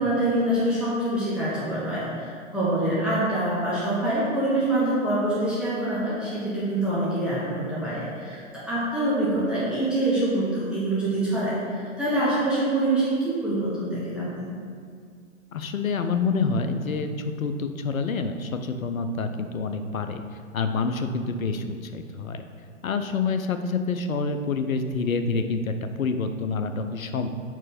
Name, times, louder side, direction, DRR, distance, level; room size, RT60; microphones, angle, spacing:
voice 1, 0.0-14.5, right 1 dB, ahead, -10 dB, 1.2 m, -25 dB
voice 2, 15.5-17.1 17.4-20.2 20.5-22.4 22.8-27.3, left 4 dB, 85° left, 8 dB, 0.7 m, -27 dB
4.9 x 4.6 x 5.8 m, 2.2 s
figure-of-eight pair, 115°, 40 cm